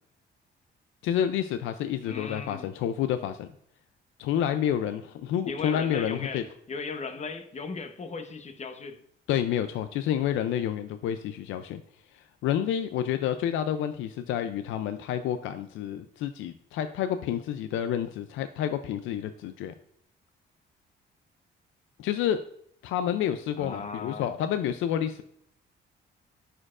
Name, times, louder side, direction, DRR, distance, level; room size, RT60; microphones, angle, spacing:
voice 1, 1.0-3.5 4.2-6.4 9.3-11.8 12.1-19.7 22.0-22.4 22.8-25.2, left 10 dB, 85° left, 10 dB, 0.4 m, -29 dB
voice 2, 2.0-2.7 5.4-9.0 23.6-24.3, left 4 dB, 35° left, 8 dB, 0.9 m, -37 dB
11.0 x 4.4 x 2.4 m, 0.70 s
cardioid pair, 90°, 20 cm